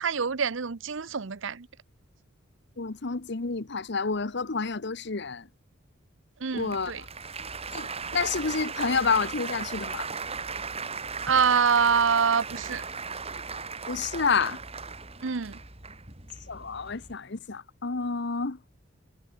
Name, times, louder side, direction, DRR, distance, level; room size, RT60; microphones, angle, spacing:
voice 1, 0.0-1.7 6.4-7.0 11.2-12.8 15.2-15.6, right 6 dB, 70° right, 0.8 m, -25 dB
voice 2, 2.8-5.5 6.5-6.9 7.7-10.1 13.9-14.6 16.5-18.6, left 5 dB, 55° left, 1.0 m, -29 dB
Applause, 6.5-17.1, right 5 dB, 30° right, 5.7 m, -37 dB
head